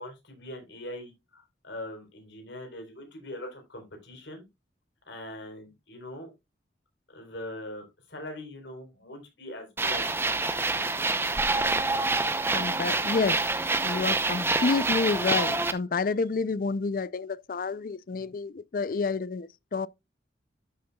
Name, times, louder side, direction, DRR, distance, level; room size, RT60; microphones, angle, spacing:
voice 1, 0.0-4.5 5.1-6.3 7.1-10.0 10.7-11.2, left 1 dB, 70° left, 3.8 m, -42 dB
sound 1, 9.8-15.7, right 3 dB, 10° right, 0.6 m, -27 dB
voice 2, 12.5-13.4 13.8-19.9, left 4 dB, 50° left, 0.4 m, -29 dB
12.5 x 6.6 x 2.3 m
head